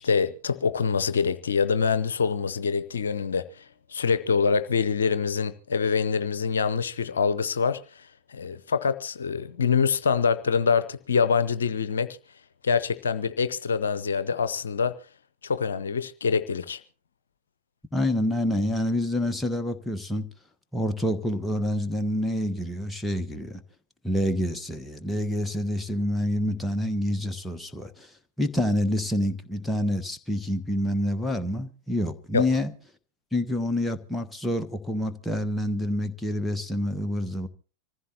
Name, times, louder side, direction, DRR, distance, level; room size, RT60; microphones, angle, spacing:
voice 1, 0.0-3.6 3.9-8.0 8.3-12.2 12.6-14.9 15.4-16.8 32.3-32.4, left 5 dB, 70° left, 0.7 m, -25 dB
voice 2, 17.9-20.3 20.7-23.6 24.0-28.1 28.4-32.7 33.3-37.5, left 1 dB, 5° left, 1.2 m, -27 dB
25.5 x 15.0 x 2.9 m
figure-of-eight pair, 90°, 0 cm